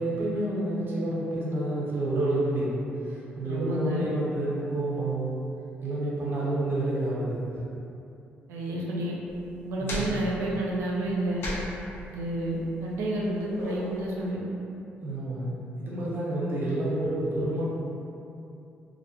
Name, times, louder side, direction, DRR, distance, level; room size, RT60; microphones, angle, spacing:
voice 1, 0.0-5.4 5.8-7.5 9.8-10.2 15.0-17.6, right 1 dB, 55° right, -6 dB, 0.8 m, -29 dB
voice 2, 3.4-4.0 8.5-9.2 9.6-11.4 12.1-14.4, right 1 dB, 85° right, -3 dB, 0.5 m, -30 dB
sound 1, 9.3-14.3, left 1 dB, 70° left, 0.5 m, -38 dB
2.5 x 2.0 x 3.0 m, 2.7 s
cardioid pair, 90°, 4 cm